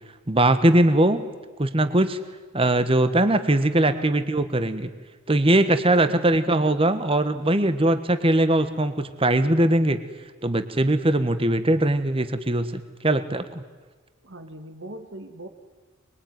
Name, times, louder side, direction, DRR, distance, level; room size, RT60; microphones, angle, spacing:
voice 1, 0.3-1.3 1.6-2.2 2.5-4.9 5.3-10.0 10.4-13.6, right 1 dB, 25° right, 10 dB, 1.4 m, -21 dB
voice 2, 3.9-4.6 6.1-6.9 14.2-15.5, right 1 dB, 60° right, 6 dB, 2.0 m, -41 dB
25.5 x 22.0 x 9.5 m, 1.3 s
head